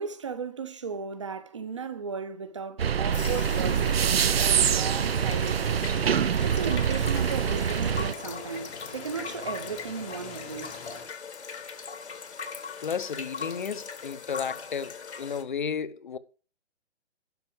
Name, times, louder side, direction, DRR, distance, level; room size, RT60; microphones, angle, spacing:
voice 1, 0.0-5.9 6.4-10.7, right 5 dB, 30° right, 0.8 m, -36 dB
sound 1, 2.8-8.1, right 8 dB, 60° right, 0.7 m, -25 dB
sound 2, 3.1-15.4, left 5 dB, 75° left, 1.9 m, -40 dB
sound 3, 3.2-11.0, left 4 dB, 10° left, 0.9 m, -45 dB
voice 2, 12.8-16.2, left 6 dB, 45° left, 0.9 m, -33 dB
12.0 x 5.6 x 6.4 m
hypercardioid pair, 180°, 34 cm